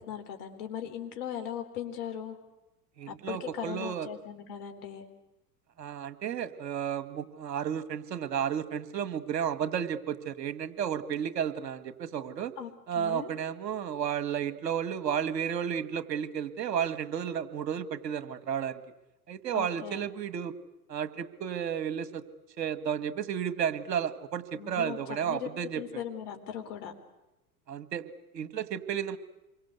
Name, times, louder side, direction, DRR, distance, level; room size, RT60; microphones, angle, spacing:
voice 1, 0.0-2.4 3.1-5.1 12.6-12.7 13.0-13.3 19.5-20.1 24.5-25.5 25.8-26.9, left 9 dB, 65° left, 6 dB, 4.1 m, -38 dB
voice 2, 3.0-4.1 5.8-12.5 12.9-18.8 19.3-20.5 20.9-22.2 22.6-26.0 27.7-29.2, right 8 dB, 80° right, 13 dB, 1.9 m, -32 dB
27.5 x 23.5 x 8.2 m, 0.99 s
hypercardioid pair, 90°, 49 cm